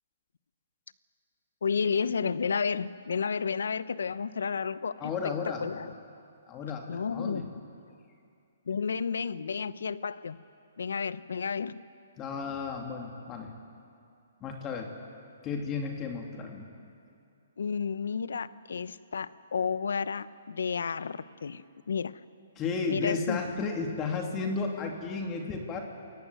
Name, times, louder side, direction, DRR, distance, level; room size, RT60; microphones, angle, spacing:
voice 1, 1.6-5.9 6.9-7.5 8.7-10.4 10.8-11.7 17.6-22.1 22.9-23.4, left 6 dB, 80° left, 16 dB, 0.8 m, -31 dB
voice 2, 5.0-5.7 6.5-7.5 12.2-13.5 14.4-14.9 15.4-16.7 22.6-25.8, left 4 dB, 25° left, 2 dB, 2.7 m, -33 dB
28.0 x 15.5 x 9.4 m, 2.4 s
hypercardioid pair, 140°, 0 cm